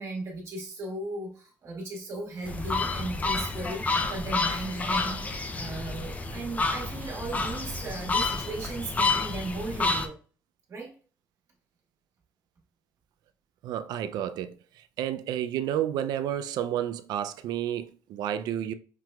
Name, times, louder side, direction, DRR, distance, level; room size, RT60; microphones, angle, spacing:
voice 1, 0.0-10.2 10.7-10.9, right 2 dB, 40° right, 1.6 m, -36 dB
sound 1, 2.4-10.1, left 3 dB, 20° left, 0.5 m, -29 dB
voice 2, 13.6-18.7, right 10 dB, 75° right, 0.4 m, -31 dB
5.9 x 2.9 x 2.3 m
cardioid pair, 135°, 7 cm